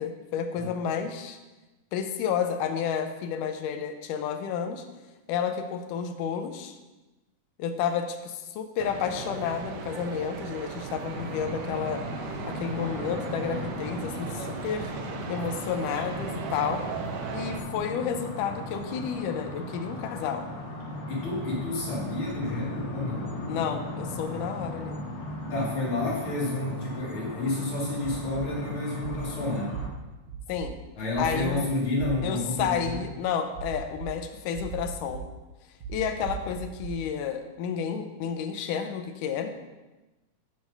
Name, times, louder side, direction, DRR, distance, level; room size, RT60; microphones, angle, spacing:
voice 1, 0.0-1.4 1.9-4.8 5.3-6.8 7.6-12.0 12.5-14.9 15.3-16.8 17.3-20.5 23.5-25.0 30.5-30.8 31.2-31.7 32.2-35.2 35.9-39.5, left 7 dB, 85° left, 7 dB, 2.3 m, -31 dB
sound 1, 8.8-17.6, right 6 dB, 80° right, 2.2 m, -37 dB
sound 2, 11.1-29.9, left 1 dB, 65° left, 2.6 m, -37 dB
voice 2, 21.1-23.3 25.5-29.8 31.0-33.0, left 2 dB, 45° left, -4 dB, 2.5 m, -30 dB
sound 3, 28.0-28.4 29.0-29.2 29.7-29.8 30.3-30.7 31.1-31.5 32.0-32.1 32.5-32.9 33.5-34.1 34.5-35.2 35.8-36.9, right 7 dB, 65° right, 1.2 m, -38 dB
8.9 x 4.8 x 5.3 m, 1.1 s
omnidirectional pair, 3.7 m